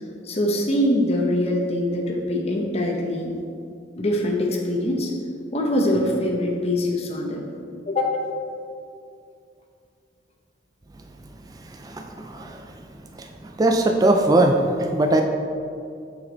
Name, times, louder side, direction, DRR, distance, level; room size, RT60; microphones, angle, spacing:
voice 1, 0.2-3.3 4.0-5.1 5.5-7.4 7.9-8.2, left 1 dB, 35° left, 0 dB, 0.7 m, -23 dB
voice 2, 11.7-12.7 13.1-15.2, right 2 dB, 20° right, 4 dB, 0.3 m, -21 dB
6.3 x 6.1 x 3.9 m, 2.4 s
head